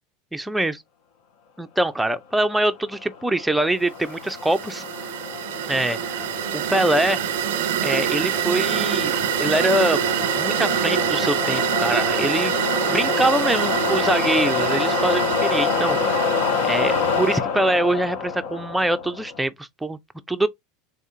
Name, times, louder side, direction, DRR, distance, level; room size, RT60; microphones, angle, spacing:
voice 1, 0.3-0.8 1.6-4.8 5.7-6.3 6.5-7.3 7.8-16.2 16.6-20.0 20.3-20.5, right 1 dB, 5° right, 0.5 m, -24 dB
sound 1, 3.0-19.4, left 6 dB, 65° left, 0.9 m, -27 dB
sound 2, 4.0-17.4, right 12 dB, 80° right, 0.4 m, -26 dB
3.6 x 3.3 x 2.7 m
supercardioid pair, 120°, 0 cm